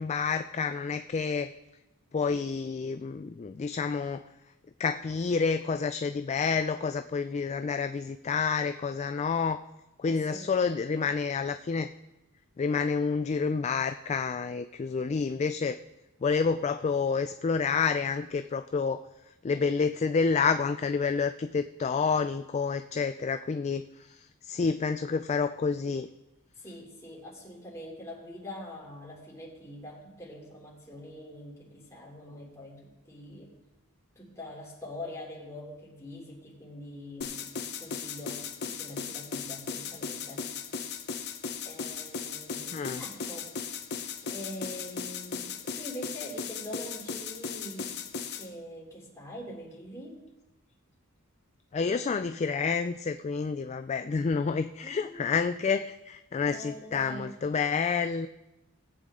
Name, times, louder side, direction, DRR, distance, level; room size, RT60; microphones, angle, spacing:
voice 1, 0.0-1.5 2.1-4.2 4.8-9.6 10.0-11.9 12.6-15.8 16.2-19.0 19.4-26.1 42.7-43.0 51.7-58.3, left 5 dB, 30° left, 9 dB, 0.3 m, -29 dB
voice 2, 10.0-10.9 26.6-33.5 34.1-40.5 41.6-43.5 44.3-48.0 48.3-50.2 54.8-55.4 56.5-57.4, left 1 dB, 15° left, -4 dB, 3.2 m, -44 dB
sound 1, 37.2-48.5, left 6 dB, 50° left, 0.9 m, -37 dB
19.0 x 8.3 x 3.7 m, 0.99 s
head